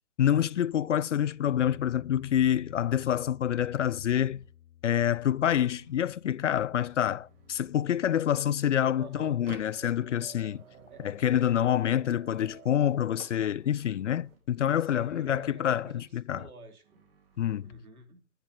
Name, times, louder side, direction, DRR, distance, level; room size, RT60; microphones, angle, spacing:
voice 1, 0.2-4.4 4.8-10.6 11.0-16.5 17.4-17.7, left 10 dB, 55° left, 0.5 m, -27 dB
Bass guitar, 1.5-7.7, left 10 dB, 70° left, 1.1 m, -53 dB
sound 1, 3.6-4.6 5.5-6.2 6.9-8.3 9.0-10.1 10.7-12.6 13.4-14.5 15.1-16.2 16.8-17.8, right 2 dB, 40° right, 3.9 m, -61 dB
sound 2, 8.3-14.3, right 6 dB, 55° right, 2.3 m, -51 dB
voice 2, 9.0-9.4 10.9-11.0 14.7-16.0 16.3-17.0 17.6-18.2, right 2 dB, 70° right, 3.5 m, -48 dB
10.0 x 10.0 x 7.2 m
figure-of-eight pair, 135°, 44 cm